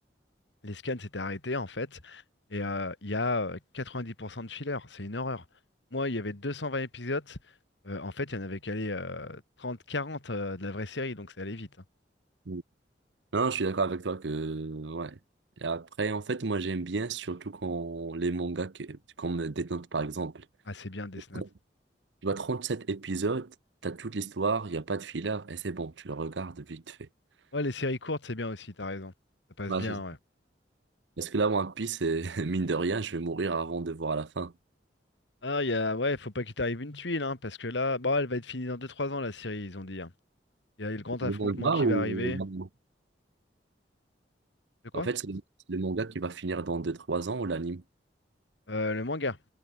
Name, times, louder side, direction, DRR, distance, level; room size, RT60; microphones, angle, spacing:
voice 1, 0.6-2.2 2.5-5.4 5.9-7.4 7.8-11.7 20.7-21.4 27.5-29.1 29.6-30.2 35.4-40.1 40.8-42.4 44.9-45.1 48.7-49.4, left 2 dB, 75° left, 2.2 m, -33 dB
voice 2, 13.3-15.2 15.6-20.4 21.3-21.5 22.2-23.5 23.8-27.1 29.7-30.0 31.2-34.5 41.2-42.7 44.9-45.4 45.7-47.8, right 3 dB, 80° right, 0.8 m, -31 dB
head